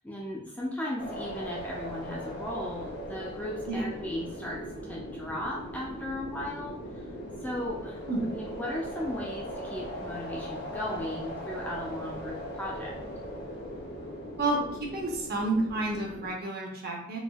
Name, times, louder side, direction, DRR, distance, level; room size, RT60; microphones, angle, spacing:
voice 1, 0.0-7.1 7.4-8.0 8.3-12.9, left 1 dB, 10° left, -4 dB, 0.3 m, -36 dB
sound 1, 1.0-16.3, equal, 55° left, 0.6 m, -39 dB
voice 2, 14.9-17.2, right 2 dB, 50° right, 0 dB, 0.6 m, -30 dB
3.3 x 2.1 x 2.2 m, 0.71 s
head